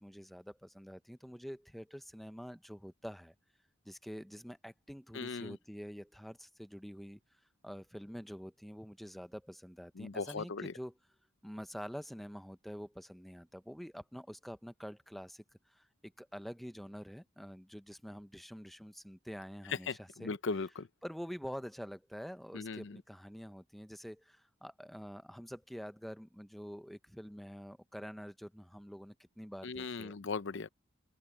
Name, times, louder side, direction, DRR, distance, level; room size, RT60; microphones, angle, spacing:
voice 1, 0.0-3.3 3.8-7.2 7.6-10.9 11.4-20.4 21.0-30.2, equal, ahead, 0.7 m, -47 dB
voice 2, 5.1-5.6 10.0-10.7 19.7-20.9 22.5-23.0 29.6-30.7, left 4 dB, 60° left, 0.7 m, -38 dB
open air
head